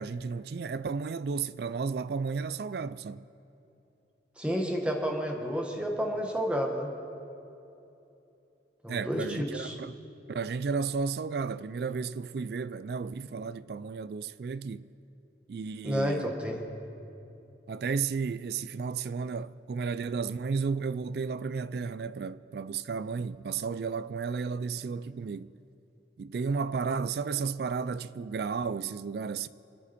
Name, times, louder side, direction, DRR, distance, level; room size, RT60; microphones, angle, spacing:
voice 1, 0.0-3.2 8.9-9.9 10.3-14.9 15.5-16.3 17.7-25.6 26.2-29.5, right 5 dB, 60° right, 0.3 m, -33 dB
voice 2, 4.4-6.9 8.8-9.8 15.8-16.6, equal, 5° right, 1.3 m, -30 dB
27.5 x 9.8 x 4.3 m
head